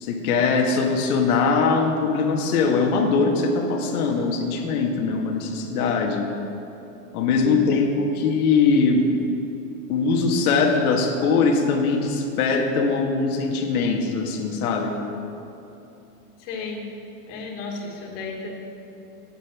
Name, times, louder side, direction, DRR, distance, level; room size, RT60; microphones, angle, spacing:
voice 1, 0.0-6.3 7.1-9.1 9.9-15.0, left 4 dB, 65° left, 2 dB, 1.8 m, -21 dB
voice 2, 16.4-16.8 17.3-18.5, left 4 dB, 45° left, -1 dB, 2.7 m, -34 dB
11.5 x 9.2 x 6.1 m, 3.0 s
supercardioid pair, 145°, 47 cm